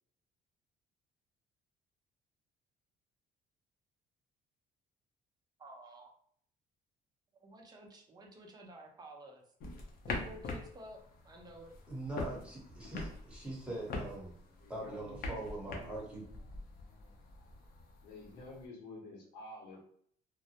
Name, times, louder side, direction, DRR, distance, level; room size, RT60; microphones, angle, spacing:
voice 1, 5.6-6.1 7.4-9.4 10.2-11.7, right 1 dB, 25° right, 1 dB, 0.6 m, -52 dB
sound 1, 9.6-18.6, left 2 dB, 60° left, 0.6 m, -44 dB
voice 2, 11.9-14.3 14.7-16.2, right 2 dB, 5° right, -4 dB, 0.9 m, -42 dB
voice 3, 14.6-16.0 18.0-19.8, left 2 dB, 85° left, -3 dB, 0.9 m, -50 dB
2.2 x 2.0 x 2.8 m, 0.62 s
cardioid pair, 110°, 17 cm